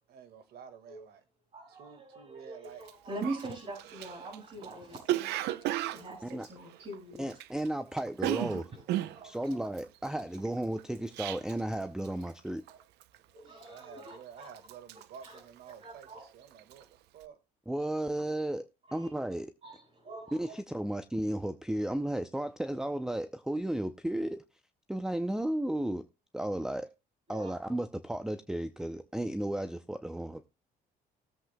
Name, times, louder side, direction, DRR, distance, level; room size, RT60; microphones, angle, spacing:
voice 1, 0.1-1.2 1.7-2.9 13.6-17.4, right 7 dB, 70° right, 1.8 m, -51 dB
voice 2, 1.5-7.3 8.7-9.6 12.7-12.8 13.3-14.5 15.2-15.4 15.8-16.2 18.9-19.1 19.6-20.4 27.3-27.5, right 2 dB, 40° right, 5.3 m, -44 dB
Cough, 2.8-2.9 3.2-7.7 7.9-11.8 12.0-12.4 12.7-13.2 13.6-14.2 14.5-16.2 16.5-16.8, right 14 dB, 85° right, 0.7 m, -35 dB
voice 3, 7.2-8.7 9.2-12.6 17.7-19.5 20.3-24.4 24.9-26.0 26.3-26.9 27.3-30.5, right 1 dB, 5° right, 0.6 m, -34 dB
19.0 x 7.7 x 2.2 m
cardioid pair, 110°, 17 cm